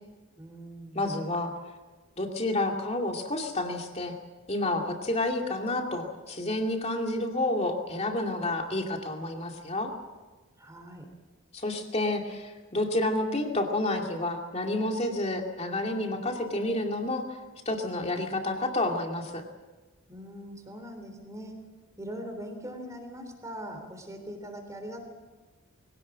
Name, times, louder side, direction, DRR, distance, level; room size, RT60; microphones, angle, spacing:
voice 1, 0.4-1.2 10.6-11.1 20.1-21.6 22.0-25.1, equal, 15° right, 4 dB, 3.5 m, -41 dB
voice 2, 0.9-1.5 2.2-4.1 4.5-9.9 11.5-17.3 17.7-19.4, left 2 dB, 30° left, 2 dB, 2.4 m, -29 dB
23.5 x 17.5 x 7.4 m, 1.3 s
head